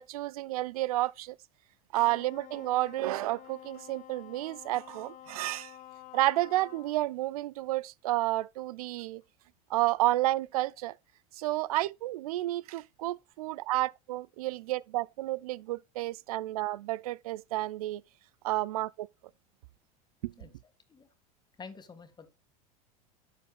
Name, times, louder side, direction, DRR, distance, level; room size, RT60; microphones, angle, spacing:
voice 1, 0.0-1.4 1.9-5.8 6.1-9.2 9.7-10.9 11.4-18.0 18.4-19.1 20.2-20.3, right 17 dB, 80° right, 0.4 m, -31 dB
Wind instrument woodwind instrument, 2.0-7.0, left 12 dB, 45° left, 1.2 m, -50 dB
voice 2, 21.6-22.3, left 5 dB, 25° left, 1.7 m, -48 dB
11.5 x 7.2 x 2.2 m
hypercardioid pair, 90°, 19 cm